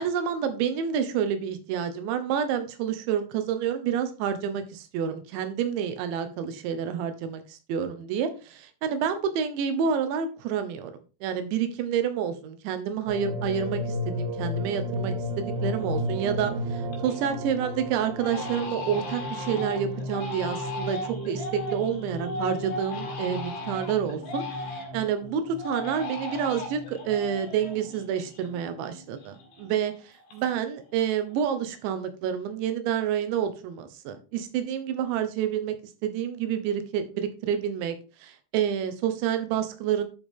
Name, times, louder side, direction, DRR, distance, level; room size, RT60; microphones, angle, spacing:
voice 1, 0.0-10.9 11.2-21.0 21.3-24.5 24.9-29.9 30.3-35.7 36.0-40.0, right 8 dB, 85° right, 9 dB, 3.4 m, -28 dB
sound 1, 13.1-29.2 29.6-29.7, equal, 60° right, 3.2 m, -35 dB
Crying sobbing, 15.0-15.1 15.6-16.0 16.4-17.3 17.6-17.7 18.2-25.1 25.6-28.9 29.2-30.7 31.0-31.5, left 2 dB, 75° left, 4.0 m, -37 dB
11.5 x 5.1 x 3.7 m, 0.33 s
omnidirectional pair, 5.1 m